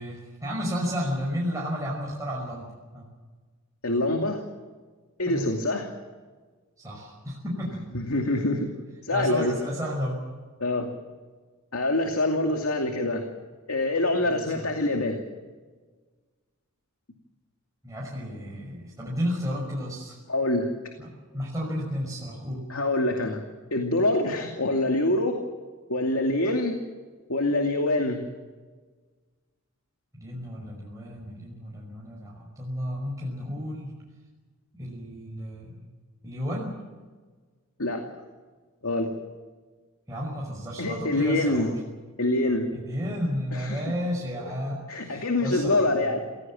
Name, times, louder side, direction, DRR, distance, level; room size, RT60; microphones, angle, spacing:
voice 1, 0.0-2.7 2.9-3.0 5.2-5.5 6.8-7.7 9.1-10.2 14.3-14.5 17.8-20.2 21.0-22.6 30.1-33.9 34.7-35.8 36.2-36.7 40.1-41.8 42.7-45.9, equal, 15° right, -4 dB, 5.7 m, -32 dB
voice 2, 3.8-4.4 5.2-5.9 7.9-8.7 9.0-9.5 10.6-10.9 11.7-13.2 13.7-15.2 20.3-20.7 22.7-23.4 23.7-25.4 25.9-26.8 27.3-28.2 37.8-38.0 38.8-39.1 40.8-41.7 42.2-42.7 43.5-43.8 44.9-46.3, left 2 dB, 80° left, 3 dB, 2.5 m, -25 dB
28.0 x 17.0 x 7.6 m, 1.4 s
head